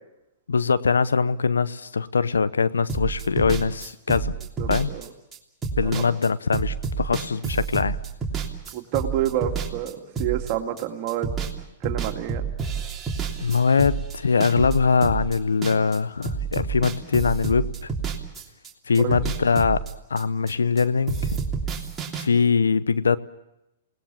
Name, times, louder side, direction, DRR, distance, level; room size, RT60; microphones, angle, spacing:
voice 1, 0.5-4.3 4.7-4.9 5.8-8.0 13.4-17.9 18.9-19.8 20.1-21.4 22.2-23.2, left 5 dB, 80° left, 16 dB, 0.8 m, -22 dB
sound 1, 2.9-11.6 11.8-16.0 16.2-18.7 19.0-20.8 21.1-22.3, right 5 dB, 15° right, 3.1 m, -29 dB
voice 2, 4.6-5.1 5.8-6.0 8.7-11.3 11.8-12.5 19.0-19.2, right 11 dB, 45° right, 3 dB, 2.6 m, -28 dB
28.5 x 19.0 x 7.2 m, 0.91 s
hypercardioid pair, 115°, 0 cm